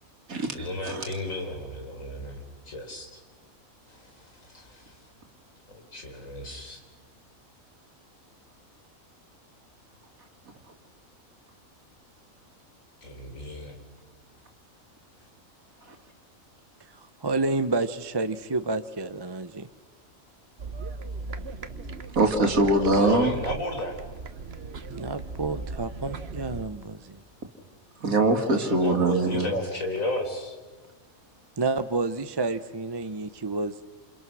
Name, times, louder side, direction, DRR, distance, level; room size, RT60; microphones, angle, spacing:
voice 1, 0.5-2.4 2.7-3.1 3.9-4.9 5.7-6.8 13.0-13.8 22.8-24.0 28.8-30.6, left 1 dB, 70° left, 3 dB, 4.6 m, -33 dB
voice 2, 17.0-19.7 24.9-27.2 31.6-33.9, right 3 dB, 25° right, 10 dB, 0.6 m, -29 dB
sound 1, 20.6-26.7, right 4 dB, 50° right, 1.3 m, -38 dB
voice 3, 22.2-23.3 28.0-29.5, right 2 dB, 90° right, 3 dB, 2.6 m, -22 dB
28.5 x 28.5 x 6.2 m, 1.3 s
omnidirectional pair, 1.4 m